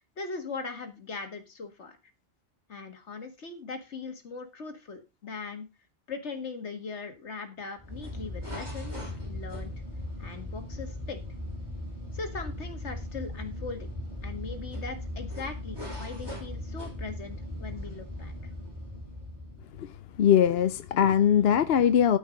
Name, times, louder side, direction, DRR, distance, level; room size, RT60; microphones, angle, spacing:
voice 1, 0.0-2.0 2.7-5.7 6.1-9.7 10.2-11.2 12.1-13.9 14.2-18.3, left 4 dB, 85° left, 2.0 m, -40 dB
sound 1, 7.8-20.0, left 1 dB, 20° right, 6.8 m, -38 dB
voice 2, 20.2-22.2, left 9 dB, 65° left, 0.9 m, -21 dB
13.0 x 5.4 x 5.1 m
omnidirectional pair, 1.1 m